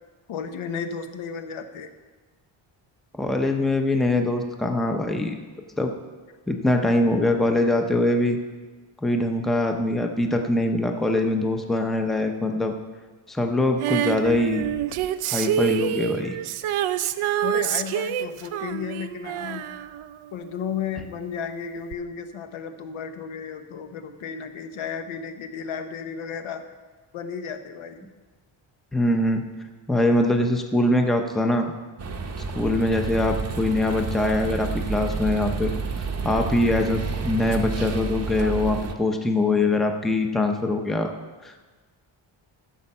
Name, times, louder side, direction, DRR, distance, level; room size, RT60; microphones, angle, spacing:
voice 1, 0.3-1.9 17.4-19.6 20.3-26.6 27.1-28.0, left 7 dB, 75° left, 8 dB, 1.0 m, -33 dB
voice 2, 3.1-5.4 5.8-5.9 6.5-8.4 9.0-12.7 13.3-14.7 15.3-16.4 28.9-29.5 29.9-31.7 32.5-35.7 36.0-41.1 41.4-41.5, left 2 dB, ahead, 4 dB, 0.6 m, -23 dB
Female singing, 13.8-20.8 21.9-22.0, right 11 dB, 85° right, 0.6 m, -27 dB
sound 1, 32.0-38.9, right 4 dB, 30° right, 0.7 m, -29 dB
14.0 x 7.0 x 5.4 m, 1.3 s
wide cardioid pair, 180°, 49 cm